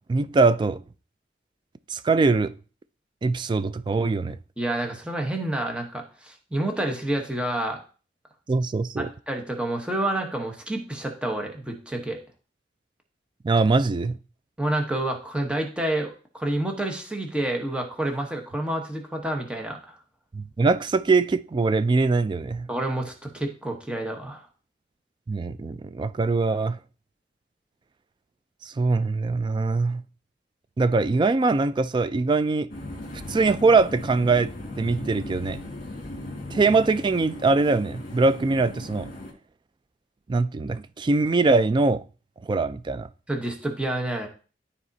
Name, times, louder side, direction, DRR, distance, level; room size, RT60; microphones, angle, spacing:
voice 1, 0.1-0.8 1.9-2.5 3.2-4.4 8.5-9.1 13.4-14.2 20.3-22.7 25.3-26.8 28.6-30.0 30.8-32.7 33.3-34.5 34.8-35.6 36.5-39.1 40.3-42.0 42.4-43.1, right 3 dB, 25° right, 0.3 m, -22 dB
voice 2, 4.6-7.8 9.0-12.2 14.6-20.0 22.7-24.4 43.3-44.3, right 1 dB, 5° right, 1.0 m, -29 dB
sound 1, 32.7-39.3, left 1 dB, 50° left, 1.8 m, -38 dB
12.5 x 4.2 x 2.7 m
head